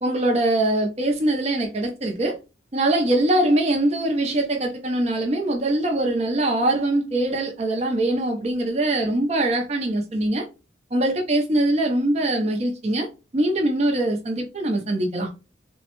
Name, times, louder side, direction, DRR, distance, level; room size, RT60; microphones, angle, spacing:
voice 1, 0.0-2.4 2.7-10.4 10.9-13.1 13.3-15.3, right 1 dB, 35° right, 0.6 m, -22 dB
3.6 x 2.1 x 2.9 m
head